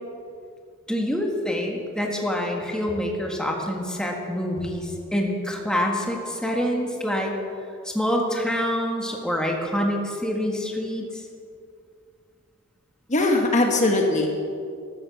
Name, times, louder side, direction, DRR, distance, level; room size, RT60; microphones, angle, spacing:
voice 1, 0.9-7.3 7.8-11.2, equal, 5° left, 0 dB, 1.7 m, -26 dB
voice 2, 13.1-14.3, left 2 dB, 35° left, 2 dB, 1.5 m, -20 dB
13.5 x 12.5 x 7.0 m, 2.4 s
head